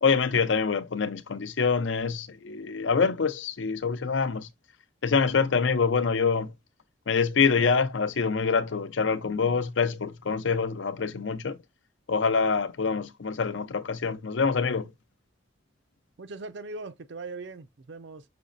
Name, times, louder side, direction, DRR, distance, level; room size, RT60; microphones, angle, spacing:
voice 1, 0.0-4.5 5.0-6.5 7.1-11.6 12.1-14.9, left 5 dB, 75° left, 0.6 m, -25 dB
voice 2, 16.2-18.2, right 3 dB, 65° right, 0.5 m, -40 dB
6.1 x 3.1 x 2.5 m
head